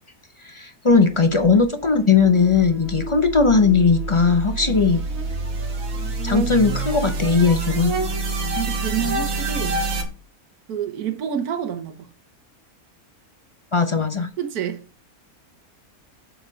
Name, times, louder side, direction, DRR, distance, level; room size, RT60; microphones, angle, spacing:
voice 1, 0.4-5.0 6.2-7.9 13.7-14.3, left 4 dB, 35° left, 0.5 m, -18 dB
sound 1, 0.9-10.1, right 2 dB, 45° right, 1.8 m, -30 dB
sound 2, 3.6-10.0, right 3 dB, 65° right, 1.7 m, -30 dB
voice 2, 8.5-9.8 10.7-12.1 14.4-14.8, right 9 dB, 80° right, 1.5 m, -28 dB
7.8 x 4.1 x 5.2 m
omnidirectional pair, 1.6 m